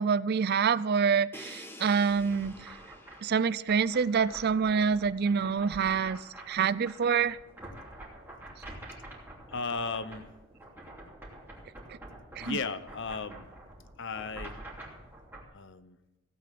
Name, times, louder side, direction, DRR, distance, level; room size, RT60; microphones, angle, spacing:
voice 1, 0.0-2.5 3.2-6.2 6.5-7.4 12.4-12.6, right 6 dB, 45° right, 19 dB, 0.4 m, -26 dB
Crash cymbal, 1.3-5.1, left 1 dB, 10° left, 1.5 m, -50 dB
sound 1, 2.1-15.4, right 1 dB, 10° right, 2.9 m, -47 dB
voice 2, 9.5-10.3 12.4-13.5 14.0-14.6 15.5-16.0, left 4 dB, 55° left, 13 dB, 1.0 m, -35 dB
16.0 x 8.6 x 7.6 m, 1.0 s
head